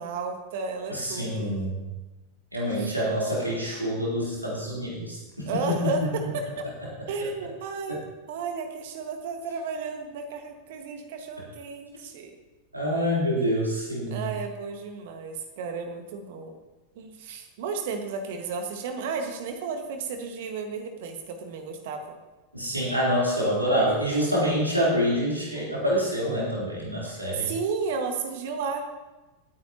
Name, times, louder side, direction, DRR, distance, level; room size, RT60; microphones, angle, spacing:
voice 1, 0.0-1.5 2.8-2.9 5.5-6.7 7.1-12.3 13.4-13.5 14.1-16.5 16.9-22.2 27.1-28.8, right 4 dB, 55° right, 5 dB, 1.6 m, -33 dB
voice 2, 0.9-1.8 2.5-6.3 7.9-8.0 12.7-14.3 22.5-27.5, equal, 85° right, -6 dB, 3.6 m, -26 dB
19.0 x 9.3 x 2.9 m, 1.1 s
figure-of-eight pair, 90°, 0 cm